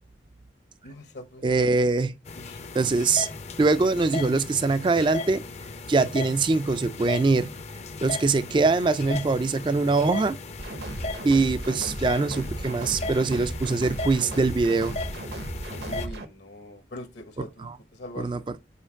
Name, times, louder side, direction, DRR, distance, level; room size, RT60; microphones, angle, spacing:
voice 1, 0.8-1.7 2.3-2.6 15.8-18.5, left 1 dB, 75° left, 1.2 m, -42 dB
voice 2, 1.4-2.1 2.7-3.3 3.6-5.4 5.9-7.5 8.0-10.4 11.2-14.9 17.6-17.8 18.2-18.4, right 3 dB, 25° right, 0.3 m, -23 dB
sound 1, 2.3-16.1, left 3 dB, 35° left, 0.5 m, -37 dB
sound 2, 10.6-16.3, right 1 dB, 65° right, 0.9 m, -35 dB
5.7 x 4.4 x 4.4 m
head